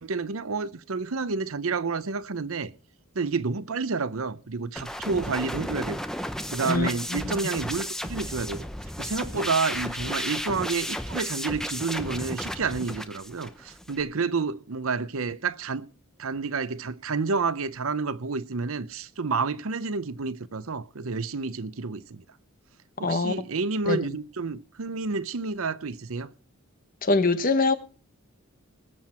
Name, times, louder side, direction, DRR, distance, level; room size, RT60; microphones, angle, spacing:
voice 1, 0.0-2.7 3.1-6.0 6.5-8.7 9.0-15.9 16.2-22.2 23.0-26.3, right 4 dB, 80° right, 0.8 m, -29 dB
sound 1, 4.8-14.0, equal, ahead, 0.7 m, -34 dB
voice 2, 6.7-7.4 23.0-23.3 23.9-24.1 27.0-27.7, left 3 dB, 40° left, 1.0 m, -24 dB
20.0 x 7.6 x 4.3 m
head